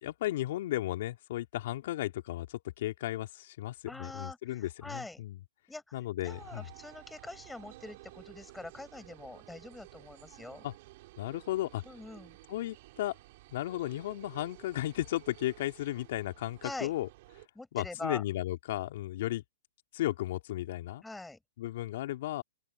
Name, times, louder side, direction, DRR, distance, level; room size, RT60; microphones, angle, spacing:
voice 1, 0.0-5.4 5.9-6.7 10.6-10.7 11.2-11.8 12.5-13.1 13.5-17.1 17.7-19.4 19.9-21.0 21.6-22.4, left 14 dB, 55° left, 2.9 m, -34 dB
voice 2, 3.9-5.2 5.7-10.6 11.9-12.4 16.6-16.9 17.6-18.2 21.0-21.4, left 2 dB, 5° left, 5.7 m, -44 dB
sound 1, 6.2-17.5, right 19 dB, 50° right, 4.5 m, -54 dB
open air
hypercardioid pair, 130°, 0 cm